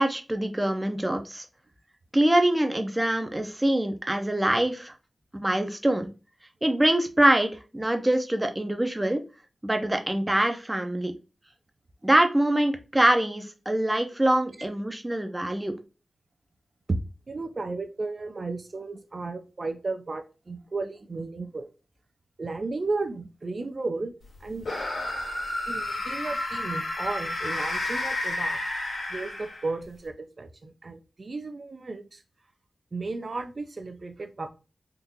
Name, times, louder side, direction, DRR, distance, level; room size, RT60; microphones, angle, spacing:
voice 1, 0.0-1.4 2.1-4.9 5.3-6.1 6.6-9.2 9.6-11.1 12.0-15.8, right 1 dB, 15° right, 6 dB, 0.7 m, -24 dB
voice 2, 17.3-21.7 22.4-24.1 24.4-24.7 25.7-28.6 29.1-32.2 32.9-34.5, right 3 dB, 50° right, 7 dB, 0.6 m, -34 dB
sound 1, 24.6-29.8, left 2 dB, 85° left, 1.4 m, -31 dB
3.7 x 2.5 x 2.8 m, 0.31 s
wide cardioid pair, 70°, 0 cm